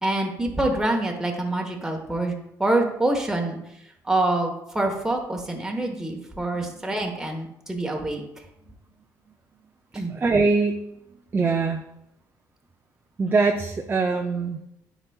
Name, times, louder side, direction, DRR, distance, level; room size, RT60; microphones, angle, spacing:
voice 1, 0.0-2.3 2.6-3.6 4.0-8.2 9.9-10.1, right 2 dB, 5° right, 1 dB, 1.2 m, -26 dB
voice 2, 10.1-10.8 11.1-11.8 13.2-14.6, right 4 dB, 30° right, 4 dB, 0.5 m, -23 dB
9.7 x 4.1 x 2.3 m, 0.81 s
supercardioid pair, 75°, 8 cm